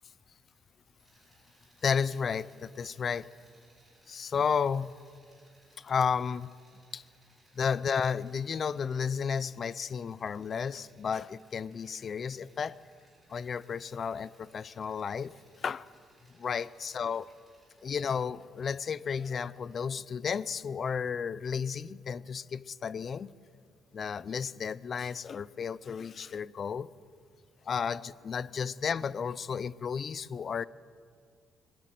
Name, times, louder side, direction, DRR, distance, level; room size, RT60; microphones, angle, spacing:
sound 1, 1.0-19.8, right 2 dB, 10° right, 5.5 m, -66 dB
voice 1, 1.8-3.3 4.1-4.9 5.8-6.5 6.9-7.0 7.6-12.8 13.3-15.9 16.3-17.3 17.8-23.3 23.9-26.9 27.6-30.7, left 6 dB, 35° left, 20 dB, 0.5 m, -33 dB
22.5 x 19.0 x 9.2 m, 2.1 s
cardioid pair, 165°, 0 cm